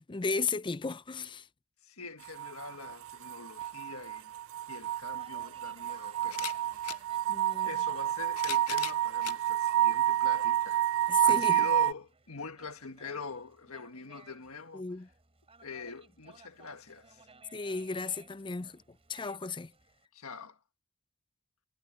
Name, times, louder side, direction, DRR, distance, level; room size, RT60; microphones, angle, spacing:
voice 1, 0.0-1.5 7.3-7.7 11.1-11.7 14.7-15.1 17.5-19.7, left 4 dB, 20° left, 0.5 m, -35 dB
voice 2, 1.8-4.3 4.7-7.0 7.7-10.9 11.2-14.9 15.6-17.3 20.1-20.6, left 4 dB, 70° left, 1.8 m, -44 dB
sound 1, 2.2-11.9, right 12 dB, 60° right, 0.3 m, -29 dB
sound 2, 4.8-4.9 6.2-7.0 8.0-9.4 10.1-10.2 11.5-11.6, left 14 dB, 85° left, 0.6 m, -40 dB
Conversation, 5.0-20.1, right 4 dB, 25° right, 3.5 m, -60 dB
head